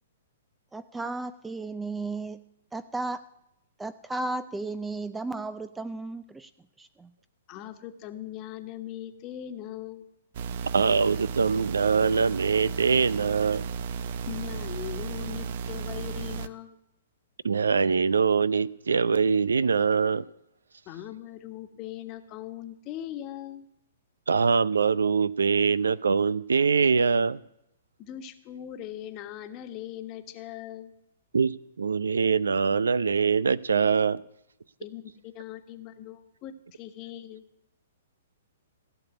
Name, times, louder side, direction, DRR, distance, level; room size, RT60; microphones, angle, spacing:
voice 1, 0.7-2.4 2.7-3.3 3.8-6.5 6.8-7.1, right 2 dB, 10° right, 0.5 m, -34 dB
voice 2, 7.5-10.1 14.3-16.8 20.9-23.7 28.0-30.9 34.8-37.4, left 12 dB, 35° left, 1.3 m, -40 dB
sound 1, 10.3-16.5, right 6 dB, 55° right, 0.7 m, -34 dB
voice 3, 10.7-13.7 17.4-20.2 24.3-27.4 31.3-34.2, right 5 dB, 85° right, 0.5 m, -23 dB
16.0 x 6.9 x 9.8 m
hypercardioid pair, 130°, 0 cm